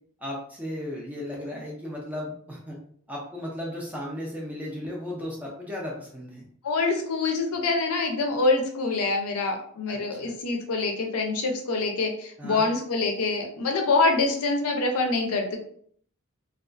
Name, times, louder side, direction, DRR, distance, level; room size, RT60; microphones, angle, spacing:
voice 1, 0.2-2.8 3.1-6.5 9.9-10.3 12.4-12.7, left 1 dB, 5° right, -3 dB, 0.5 m, -35 dB
voice 2, 6.6-15.6, left 3 dB, 80° left, 3 dB, 0.5 m, -25 dB
2.3 x 2.3 x 2.4 m, 0.62 s
head